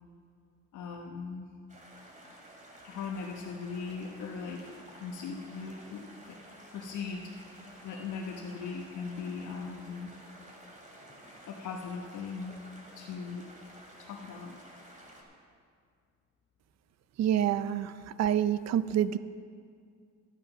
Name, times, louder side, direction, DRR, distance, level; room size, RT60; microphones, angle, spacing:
voice 1, 0.7-1.5 2.8-6.4 6.7-10.1 11.5-12.6 12.9-13.5 14.0-14.6, left 5 dB, 75° left, -1 dB, 1.0 m, -39 dB
sound 1, 1.7-15.2, right 1 dB, 25° right, 2.6 m, -52 dB
voice 2, 17.2-19.2, right 10 dB, 60° right, 15 dB, 0.5 m, -27 dB
12.5 x 9.0 x 5.8 m, 2.2 s
cardioid pair, 90°, 30 cm